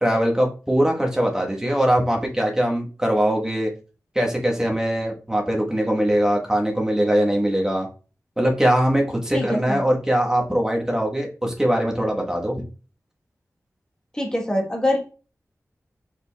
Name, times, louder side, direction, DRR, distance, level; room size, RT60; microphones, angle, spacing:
voice 1, 0.0-3.7 4.1-7.9 8.4-12.6, right 1 dB, 10° right, 0 dB, 1.1 m, -21 dB
voice 2, 9.3-9.9 14.1-15.0, left 1 dB, 10° left, 0 dB, 1.1 m, -24 dB
5.1 x 4.5 x 2.2 m, 0.35 s
wide cardioid pair, 95°, 6 cm